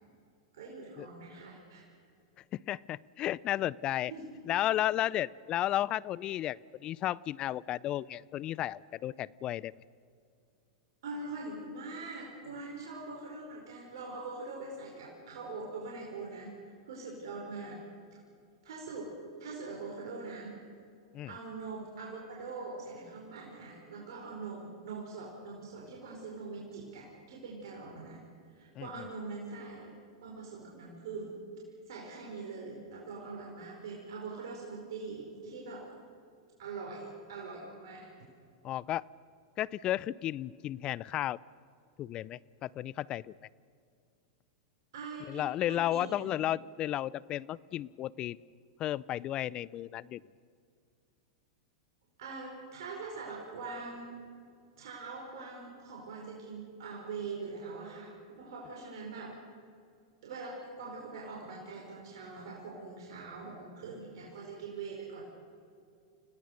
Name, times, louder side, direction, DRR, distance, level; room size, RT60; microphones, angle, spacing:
voice 1, 0.5-1.9 4.1-4.3 11.0-16.6 16.9-17.8 18.1-18.2 18.6-20.6 21.3-28.2 28.5-29.9 30.2-31.4 31.9-35.9 36.6-38.1 44.9-46.3 52.2-54.2 54.8-59.4 60.2-65.2, right 3 dB, 65° right, -2 dB, 4.9 m, -43 dB
voice 2, 2.5-4.1 4.4-9.7 21.1-21.3 28.8-28.9 38.6-39.0 39.6-41.4 42.0-43.3 45.3-48.4 48.8-50.2, left 13 dB, 35° left, 22 dB, 0.5 m, -33 dB
30.0 x 18.0 x 6.7 m, 2.4 s
hypercardioid pair, 100°, 2 cm